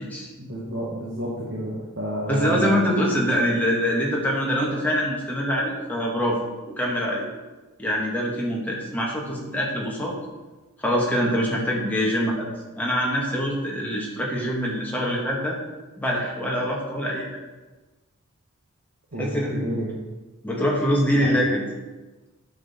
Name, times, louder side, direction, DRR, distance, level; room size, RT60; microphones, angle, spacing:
voice 1, 0.4-2.9 19.1-19.9 21.1-21.3, right 1 dB, 55° right, -5 dB, 1.6 m, -30 dB
voice 2, 2.3-6.4 6.8-7.2 7.8-10.1 10.8-12.5 12.8-15.6 16.0-17.3 19.2-19.7 20.4-21.6, equal, 5° left, -3 dB, 1.5 m, -24 dB
8.8 x 6.0 x 4.3 m, 1.2 s
head